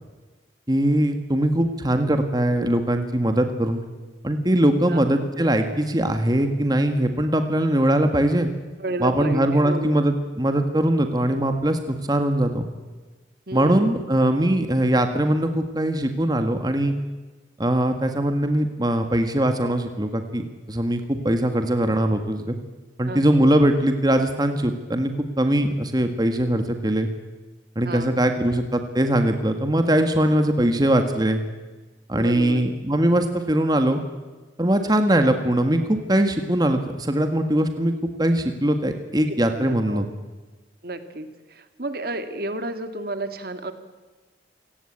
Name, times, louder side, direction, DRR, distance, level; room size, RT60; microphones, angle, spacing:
voice 1, 0.7-3.8 4.2-8.5 9.0-12.7 13.5-16.9 17.6-22.6 23.0-27.1 27.7-31.4 32.1-34.0 34.6-40.1, right 1 dB, 20° right, 6 dB, 1.6 m, -21 dB
voice 2, 8.8-10.0 13.5-13.8 23.1-23.4 27.8-28.5 32.1-32.6 39.3-40.1 40.8-43.7, right 2 dB, 55° right, 9 dB, 2.1 m, -32 dB
28.0 x 18.0 x 8.8 m, 1.3 s
head